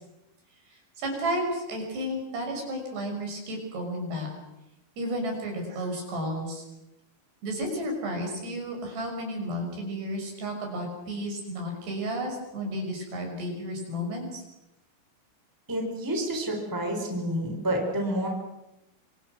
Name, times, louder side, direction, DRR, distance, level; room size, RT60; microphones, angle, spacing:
voice 1, 1.0-4.3 5.0-6.6 7.4-14.4, equal, 55° right, 2 dB, 8.1 m, -32 dB
voice 2, 15.7-18.3, right 1 dB, 5° right, 2 dB, 4.0 m, -29 dB
27.5 x 26.0 x 6.3 m, 0.91 s
omnidirectional pair, 5.9 m